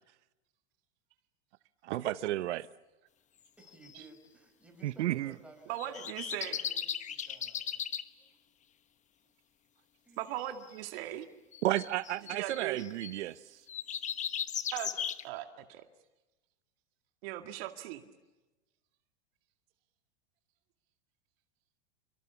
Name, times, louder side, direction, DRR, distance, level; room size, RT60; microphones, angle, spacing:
voice 1, 1.8-2.6 4.8-5.3 11.6-13.6, right 15 dB, 80° right, 0.8 m, -32 dB
voice 2, 3.6-7.8 8.2-8.3 10.0-10.3, right 1 dB, 5° right, 6.3 m, -57 dB
sound 1, 3.7-3.9 5.8-8.0 10.4-10.7 11.5-13.2 13.7-15.2, left 9 dB, 20° left, 1.1 m, -37 dB
voice 3, 5.7-6.6 10.2-11.3 12.3-12.8 14.7-15.8 17.2-18.1, right 13 dB, 60° right, 2.1 m, -39 dB
28.5 x 23.0 x 7.1 m
supercardioid pair, 135°, 34 cm